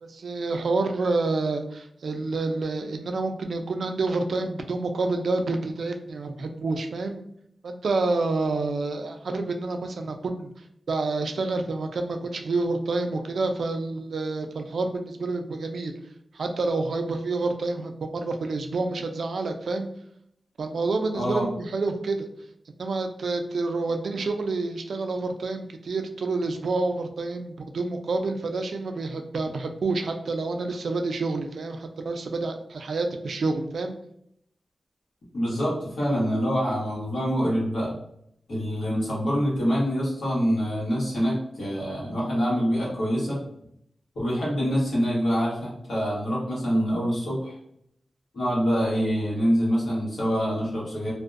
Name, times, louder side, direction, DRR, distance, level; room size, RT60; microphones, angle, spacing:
voice 1, 0.0-7.2 7.6-10.5 10.9-15.9 16.3-19.9 20.6-22.3 22.8-33.9, right 3 dB, 75° right, 5 dB, 0.3 m, -28 dB
voice 2, 21.1-21.5 35.3-37.9 38.5-43.4 44.1-47.5 48.3-51.1, equal, 90° left, -6 dB, 1.1 m, -25 dB
2.6 x 2.1 x 2.4 m, 0.72 s
wide cardioid pair, 115°, 0 cm